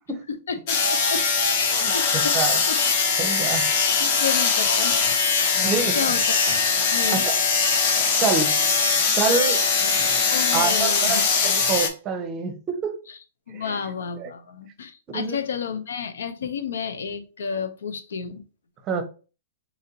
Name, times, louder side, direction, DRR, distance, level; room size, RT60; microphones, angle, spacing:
voice 1, 0.5-1.2 1.6-2.4 2.7-2.8 3.5-5.1 5.5-6.5 6.9-7.2 10.3-11.6 13.1-13.2 13.5-18.4, left 6 dB, 85° left, 0.6 m, -32 dB
sound 1, 0.7-11.9, left 5 dB, 45° left, 0.8 m, -21 dB
voice 2, 1.8-2.6 3.2-3.8 5.6-6.1 7.1-7.3 8.2-8.5 9.2-9.6 10.5-11.2 11.7-13.0 13.5-13.8 14.2-14.3 15.1-15.4 18.9-19.0, right 5 dB, 25° right, 0.7 m, -26 dB
4.1 x 2.5 x 2.8 m
hypercardioid pair, 150°, 0 cm